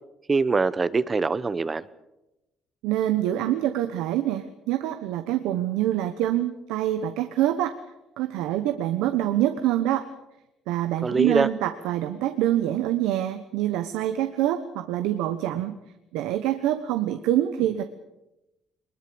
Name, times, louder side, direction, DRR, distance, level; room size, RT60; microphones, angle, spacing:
voice 1, 0.3-1.8 11.0-11.5, right 4 dB, 30° right, 16 dB, 1.1 m, -23 dB
voice 2, 2.8-7.7 8.2-10.1 10.7-15.7 16.1-17.8, right 12 dB, 85° right, 9 dB, 1.1 m, -25 dB
22.5 x 21.0 x 7.0 m, 0.93 s
supercardioid pair, 75°, 0 cm